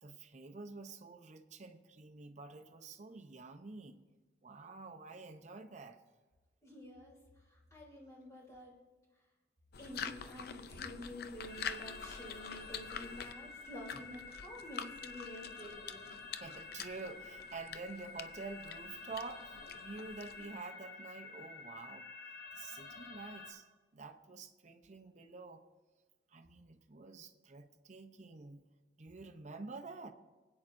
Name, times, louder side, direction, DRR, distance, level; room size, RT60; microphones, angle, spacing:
voice 1, 0.0-4.0 4.4-6.0 16.4-22.1 22.5-23.6 23.9-25.6 26.3-28.6 29.0-30.1, right 4 dB, 40° right, 0.7 m, -48 dB
voice 2, 6.6-8.8 9.8-16.2, equal, 20° left, 3.1 m, -50 dB
sound 1, 9.7-20.6, left 7 dB, 60° left, 0.5 m, -47 dB
sound 2, 11.5-23.5, left 4 dB, 80° left, 3.6 m, -50 dB
24.0 x 8.6 x 2.6 m
head